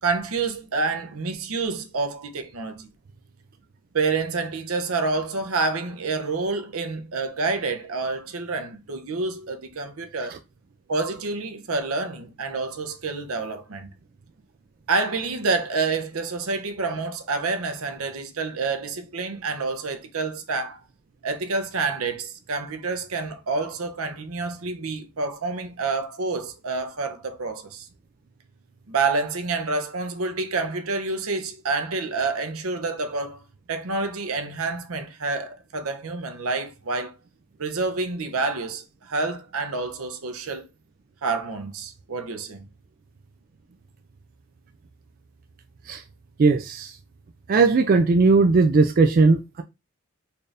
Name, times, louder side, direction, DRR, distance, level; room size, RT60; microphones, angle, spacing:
voice 1, 0.0-2.9 3.9-10.4 10.9-13.9 14.9-20.8 21.2-27.9 28.9-33.4 33.7-37.2 37.6-40.7 41.2-42.6, right 3 dB, 80° right, 0.7 m, -28 dB
voice 2, 46.4-46.9 47.5-49.6, right 4 dB, 40° right, 0.3 m, -18 dB
4.3 x 2.5 x 3.3 m
head